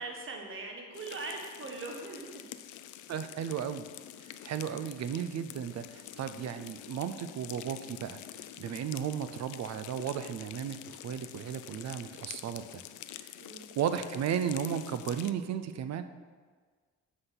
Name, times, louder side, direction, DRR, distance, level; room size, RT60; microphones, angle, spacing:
voice 1, 0.0-2.4 13.4-13.7, right 3 dB, 45° right, 1 dB, 1.3 m, -41 dB
sound 1, 0.9-15.3, left 12 dB, 80° left, 0.4 m, -47 dB
voice 2, 3.1-3.8 4.2-8.2 8.6-10.8 11.0-12.8 13.2-13.3 13.8-16.0, right 8 dB, 60° right, 11 dB, 0.6 m, -34 dB
7.7 x 4.1 x 5.8 m, 1.5 s
cardioid pair, 90°, 30 cm